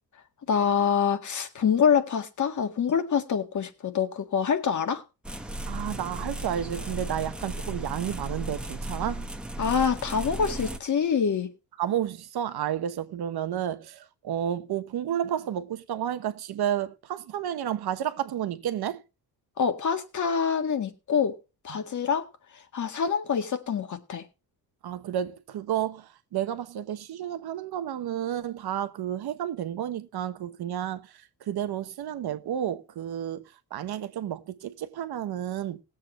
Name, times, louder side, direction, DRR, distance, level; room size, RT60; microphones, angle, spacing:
voice 1, 0.5-5.0 9.6-11.5 19.6-21.4 21.6-22.3 22.7-24.2, left 7 dB, 50° left, 1.7 m, -25 dB
sound 1, 5.2-10.8, right 1 dB, ahead, 1.1 m, -35 dB
voice 2, 5.6-9.3 11.8-19.0 21.7-21.8 24.8-35.8, right 10 dB, 75° right, 1.1 m, -31 dB
19.5 x 7.7 x 3.1 m
wide cardioid pair, 160°, 39 cm